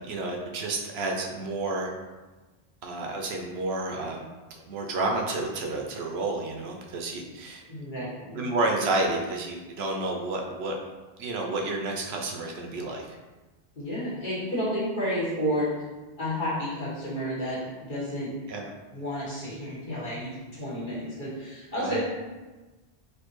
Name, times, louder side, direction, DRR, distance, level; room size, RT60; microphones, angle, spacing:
voice 1, 0.0-1.9 2.8-4.3 4.7-7.6 8.4-10.8 11.2-13.1 18.5-18.7 21.8-22.0, right 2 dB, 75° right, 1 dB, 0.8 m, -30 dB
voice 2, 7.7-8.4 13.7-15.7 16.2-18.4 18.9-22.0, equal, 50° left, -8 dB, 1.4 m, -31 dB
4.3 x 2.6 x 3.0 m, 1.2 s
omnidirectional pair, 1.1 m